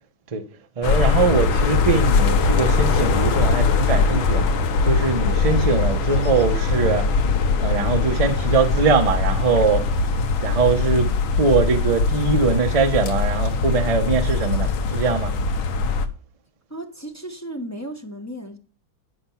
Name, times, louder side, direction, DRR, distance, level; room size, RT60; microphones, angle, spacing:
sound 1, 0.8-16.1, left 4 dB, 80° left, 1.7 m, -21 dB
voice 1, 0.8-4.5 4.8-7.1 7.6-9.8 10.4-15.3, right 4 dB, 35° right, 0.6 m, -22 dB
voice 2, 16.7-18.6, right 1 dB, 15° left, 0.5 m, -34 dB
11.5 x 5.8 x 5.7 m
omnidirectional pair, 2.2 m